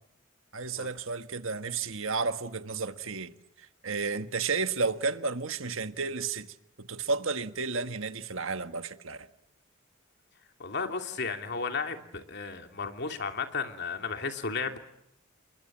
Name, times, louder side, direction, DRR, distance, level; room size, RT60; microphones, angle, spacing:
voice 1, 0.5-3.3 3.8-6.5 6.8-9.3, right 4 dB, 70° right, 1.6 m, -32 dB
voice 2, 10.6-14.8, left 4 dB, 55° left, 2.8 m, -34 dB
30.0 x 23.5 x 7.4 m
head